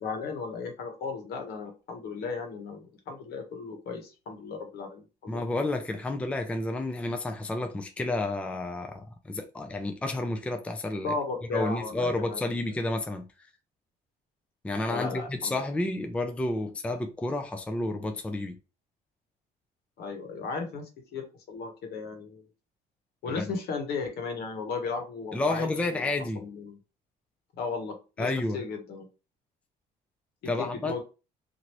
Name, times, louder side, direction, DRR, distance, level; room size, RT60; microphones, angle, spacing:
voice 1, 0.0-5.5 11.0-12.4 14.9-15.5 20.0-22.5 23.2-26.1 26.3-26.8 27.6-29.1 30.4-31.0, left 4 dB, 70° left, 1.1 m, -35 dB
voice 2, 5.3-11.1 11.5-13.3 14.6-18.6 23.3-23.5 25.3-26.5 28.2-28.6 30.5-31.0, left 2 dB, 5° left, 0.4 m, -30 dB
2.9 x 2.6 x 2.9 m
cardioid pair, 110°, 17 cm